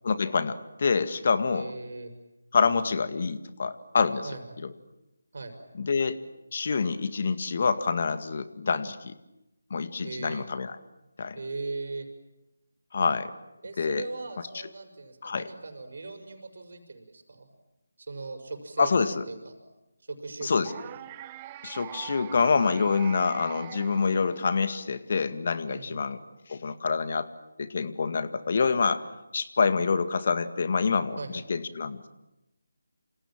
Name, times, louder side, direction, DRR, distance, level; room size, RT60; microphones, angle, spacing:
voice 1, 0.0-1.7 2.5-4.3 4.6-4.7 5.8-6.2 6.5-9.1 9.7-10.8 11.2-11.4 12.9-13.3 13.8-14.1 15.2-15.5 18.8-19.2 20.4-20.7 21.6-26.2 26.5-27.3 27.6-29.0 29.3-31.2 31.5-32.1, left 5 dB, 50° left, 11 dB, 2.0 m, -26 dB
voice 2, 1.5-2.1 4.2-4.6 5.3-5.5 10.0-10.4 11.3-12.1 13.6-17.5 18.0-18.9 19.3-19.5 20.0-21.0 25.7-26.0 31.2-31.4, right 3 dB, 60° right, 7 dB, 6.2 m, -39 dB
sound 1, 20.6-24.8, right 12 dB, 20° right, 0.9 m, -43 dB
28.5 x 27.0 x 7.6 m, 0.94 s
figure-of-eight pair, 155°, 0 cm